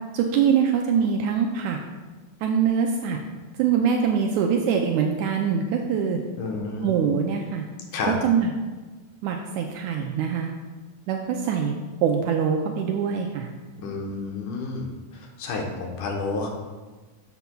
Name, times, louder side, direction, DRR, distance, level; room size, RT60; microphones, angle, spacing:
voice 1, 0.1-1.8 2.4-3.2 3.6-6.2 6.8-7.6 8.0-8.5 9.2-10.5 11.1-11.7 12.0-13.5, right 7 dB, 85° right, 2 dB, 1.7 m, -23 dB
voice 2, 6.4-7.0 7.9-8.1 13.8-14.9 15.1-16.5, left 3 dB, 70° left, 1 dB, 2.4 m, -30 dB
12.0 x 7.0 x 2.3 m, 1.3 s
omnidirectional pair, 3.9 m